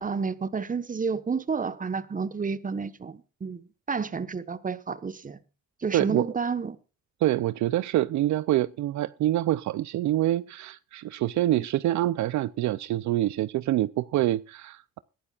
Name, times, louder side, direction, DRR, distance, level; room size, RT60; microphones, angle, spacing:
voice 1, 0.0-5.4 5.8-6.8 11.5-11.6, right 5 dB, 25° right, 1.2 m, -30 dB
voice 2, 5.9-6.3 7.2-15.0, right 14 dB, 70° right, 0.5 m, -26 dB
21.5 x 11.5 x 2.4 m
cardioid pair, 90°, 30 cm